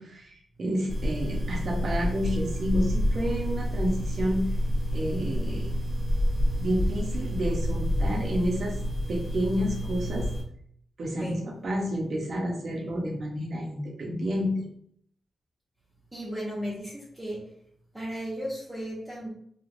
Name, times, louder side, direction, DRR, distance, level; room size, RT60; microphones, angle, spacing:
voice 1, 0.0-4.5 4.9-5.7 6.6-8.8 9.1-10.3 11.0-14.6, equal, 65° right, -1 dB, 0.8 m, -30 dB
sound 1, 0.9-10.4, equal, 15° left, 0.9 m, -28 dB
voice 2, 16.1-17.4 17.9-19.3, equal, 20° right, -7 dB, 0.9 m, -35 dB
3.1 x 2.4 x 2.5 m, 0.67 s
cardioid pair, 60°, 0 cm